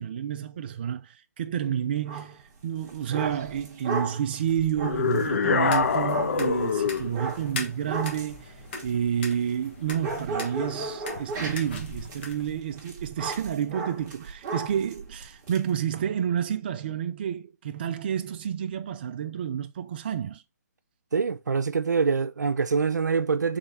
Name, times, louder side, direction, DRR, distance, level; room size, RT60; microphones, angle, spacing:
voice 1, 0.0-8.6 8.8-20.4, right 9 dB, 35° right, 0.3 m, -30 dB
sound 1, 2.1-2.4 2.8-9.7 10.0-15.6, right 3 dB, 20° right, 1.1 m, -36 dB
sound 2, 4.8-7.1, left 5 dB, 60° left, 0.6 m, -24 dB
sound 3, 5.6-12.6, left 3 dB, 40° left, 1.2 m, -41 dB
voice 2, 21.1-23.6, right 5 dB, 85° right, 0.6 m, -25 dB
3.7 x 3.2 x 4.1 m
hypercardioid pair, 160°, 9 cm